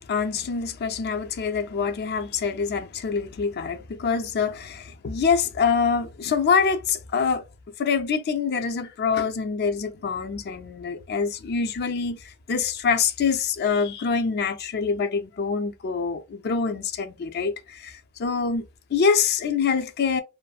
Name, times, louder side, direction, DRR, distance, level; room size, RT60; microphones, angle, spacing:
voice 1, 0.1-7.4 7.8-18.6 18.9-20.2, left 5 dB, 45° left, 0.4 m, -25 dB
2.5 x 2.5 x 2.3 m
head